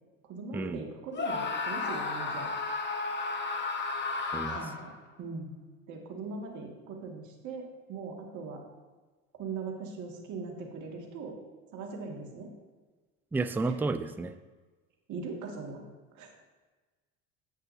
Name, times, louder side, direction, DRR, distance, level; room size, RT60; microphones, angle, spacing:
voice 1, 0.2-2.5 4.5-4.9 5.2-5.6 5.9-8.6 9.3-11.4 11.7-12.5 13.6-13.8 15.1-15.8 16.1-16.3, right 4 dB, 60° right, 0 dB, 2.1 m, -40 dB
Screaming, 1.1-4.9, left 3 dB, 30° left, 1.1 m, -33 dB
voice 2, 13.3-14.3, right 3 dB, 5° right, 10 dB, 0.3 m, -31 dB
10.0 x 7.9 x 2.7 m, 1.3 s
supercardioid pair, 100°, 34 cm